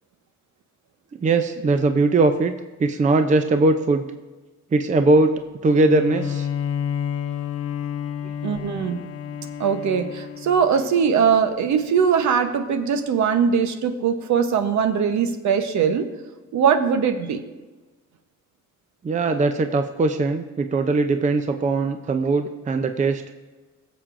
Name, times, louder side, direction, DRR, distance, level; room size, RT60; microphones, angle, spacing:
voice 1, 1.2-2.5 2.8-4.1 4.7-6.5 19.0-23.2, right 3 dB, 25° right, 8 dB, 0.5 m, -20 dB
Bowed string instrument, 5.8-11.3, left 8 dB, 50° left, 0.5 m, -30 dB
voice 2, 8.4-9.0 9.6-16.1 16.5-17.4, right 7 dB, 70° right, 8 dB, 1.0 m, -21 dB
17.5 x 7.3 x 2.6 m, 1.2 s
cardioid pair, 90°, 30 cm